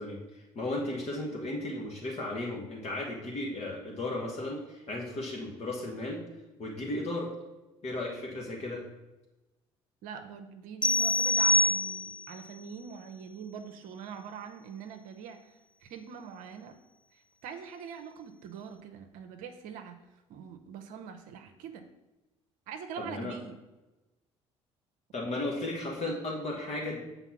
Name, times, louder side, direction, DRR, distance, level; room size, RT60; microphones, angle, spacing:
voice 1, 0.0-6.2 6.6-7.3 7.8-8.8 23.0-23.3 25.1-27.0, left 2 dB, 45° left, -1 dB, 1.5 m, -35 dB
voice 2, 10.0-15.5 15.8-16.8 17.1-20.0 20.3-21.9 22.7-23.5, right 7 dB, 65° right, 7 dB, 0.7 m, -43 dB
sound 1, 10.8-12.3, left 1 dB, 5° left, 0.4 m, -25 dB
6.9 x 4.0 x 5.8 m, 1.0 s
figure-of-eight pair, 50°, 15 cm